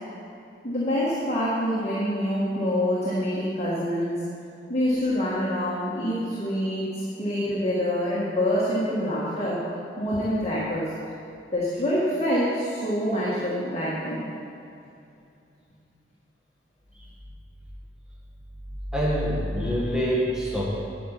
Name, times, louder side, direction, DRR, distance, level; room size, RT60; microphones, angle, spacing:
voice 1, 0.6-4.2 4.7-9.6 10.0-10.9 11.5-14.3, equal, 35° left, -8 dB, 1.7 m, -26 dB
voice 2, 18.9-20.6, equal, 5° right, -6 dB, 1.4 m, -25 dB
10.0 x 5.8 x 8.2 m, 2.6 s
head